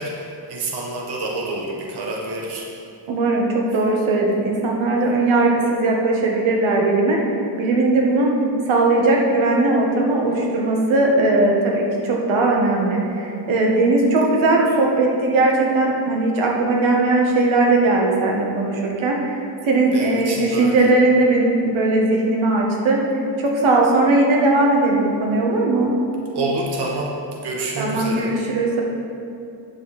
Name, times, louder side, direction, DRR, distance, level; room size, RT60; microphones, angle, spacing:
voice 1, 0.0-2.7 19.9-20.9 26.3-28.3, right 2 dB, 55° right, -2 dB, 1.2 m, -27 dB
voice 2, 3.1-7.2 7.6-8.3 8.7-23.0 23.4-25.9 27.8-28.8, right 2 dB, 80° right, -1 dB, 1.5 m, -19 dB
9.8 x 7.4 x 4.2 m, 2.6 s
wide cardioid pair, 150°, 47 cm